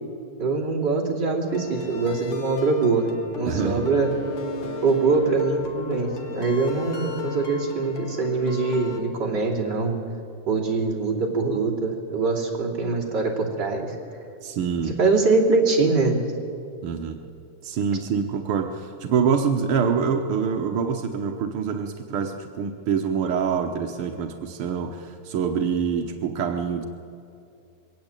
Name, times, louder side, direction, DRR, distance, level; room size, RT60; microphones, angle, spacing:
voice 1, 0.4-3.1 3.3-4.1 4.8-10.0 10.5-14.0 14.9-16.2, right 3 dB, 30° right, -2 dB, 3.3 m, -23 dB
sound 1, 1.5-9.0, left 3 dB, 45° left, 2.4 m, -35 dB
voice 2, 3.4-3.9 14.4-15.0 16.8-17.2 17.6-26.8, right 6 dB, 70° right, 4 dB, 1.3 m, -25 dB
22.5 x 17.5 x 8.9 m, 2.5 s
omnidirectional pair, 3.9 m